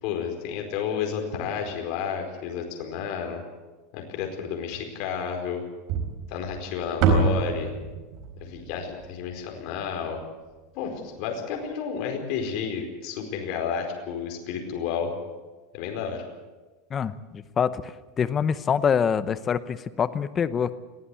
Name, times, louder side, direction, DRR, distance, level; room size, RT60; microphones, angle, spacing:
voice 1, 0.0-3.4 3.9-5.6 6.3-7.7 8.4-10.2 10.7-15.1 15.7-16.2, left 7 dB, 55° left, 3 dB, 4.7 m, -31 dB
sound 1, 5.9-10.2, right 4 dB, 50° right, 4.5 m, -27 dB
voice 2, 16.9-17.9 18.2-20.8, left 7 dB, 20° left, 13 dB, 0.8 m, -25 dB
22.0 x 15.5 x 8.4 m, 1.2 s
supercardioid pair, 155°, 0 cm